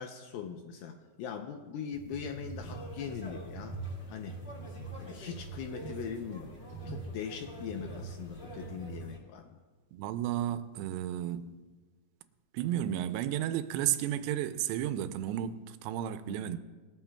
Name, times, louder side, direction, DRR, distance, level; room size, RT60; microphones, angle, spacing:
voice 1, 0.0-3.8 4.1-4.4 5.0-6.5 6.9-9.6 16.3-16.5, left 7 dB, 80° left, 2.1 m, -41 dB
sound 1, 1.9-9.1, right 3 dB, 15° right, 2.8 m, -44 dB
sound 2, 2.6-9.2, right 1 dB, 40° left, 0.9 m, -49 dB
voice 2, 9.9-11.5 12.5-16.6, right 11 dB, 85° right, 2.7 m, -33 dB
20.5 x 13.0 x 2.3 m
omnidirectional pair, 4.9 m